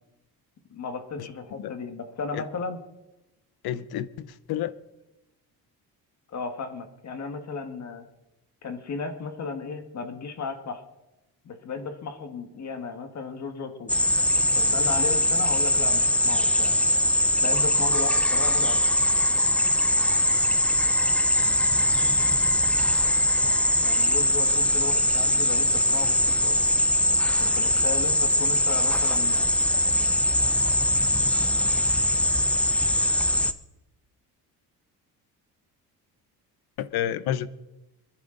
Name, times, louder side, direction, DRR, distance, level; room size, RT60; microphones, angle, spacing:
voice 1, 0.7-2.8 6.3-8.0 8.6-10.8 11.4-13.9 14.5-16.7 17.4-18.8 23.8-26.6 27.4-29.5, left 4 dB, 45° left, 7 dB, 1.8 m, -35 dB
voice 2, 3.6-4.7 36.8-37.5, left 11 dB, 70° left, 16 dB, 0.9 m, -30 dB
sound 1, 13.9-33.5, left 1 dB, 5° left, 0.5 m, -22 dB
25.5 x 10.5 x 3.9 m, 0.99 s
cardioid pair, 120°, 38 cm